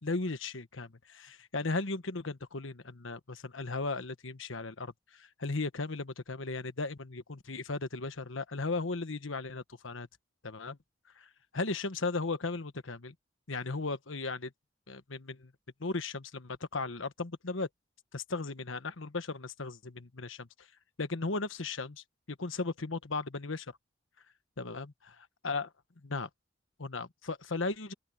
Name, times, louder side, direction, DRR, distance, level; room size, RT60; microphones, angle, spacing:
voice 1, 0.0-10.1 10.4-10.8 11.2-13.1 13.5-14.5 14.9-15.5 15.8-17.7 18.1-20.7 21.0-23.8 24.6-24.9 25.4-25.7 26.0-26.3 26.8-27.9, left 3 dB, 90° left, 1.3 m, -36 dB
open air
head